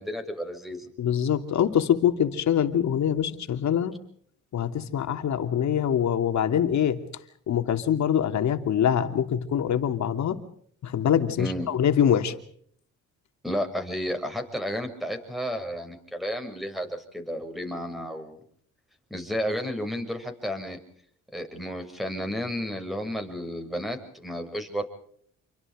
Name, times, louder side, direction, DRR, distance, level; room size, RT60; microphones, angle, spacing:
voice 1, 0.0-0.9 11.4-11.7 13.4-18.4 19.1-20.8 21.3-24.8, equal, ahead, 5 dB, 6.8 m, -32 dB
voice 2, 1.0-3.9 4.5-7.0 7.5-10.4 10.8-12.3, left 9 dB, 65° left, 7 dB, 3.0 m, -24 dB
29.0 x 24.0 x 5.1 m, 0.63 s
cardioid pair, 90°, 30 cm